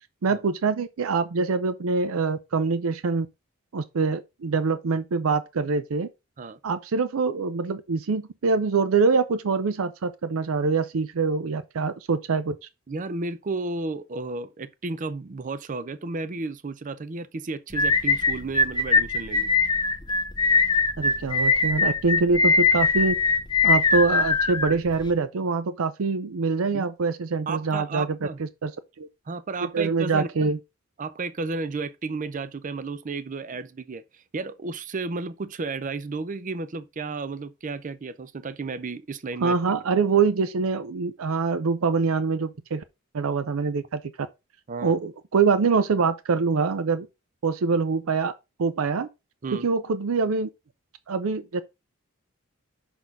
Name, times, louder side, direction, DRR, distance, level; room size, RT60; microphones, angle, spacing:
voice 1, 0.2-3.3 3.7-6.1 6.6-12.5 21.0-23.1 23.6-28.7 29.0-29.1 29.7-30.6 39.4-42.8 43.1-44.3 44.8-47.1 47.4-48.3 48.6-49.1 49.5-50.5 51.1-51.6, right 4 dB, 90° right, 0.5 m, -24 dB
voice 2, 12.9-19.5 26.7-26.8 27.5-28.4 29.3-30.5 31.0-39.6 44.7-45.0 49.4-49.7, right 3 dB, 40° right, 0.5 m, -33 dB
sound 1, 17.7-25.1, left 4 dB, 20° left, 0.8 m, -22 dB
6.0 x 4.1 x 5.2 m
head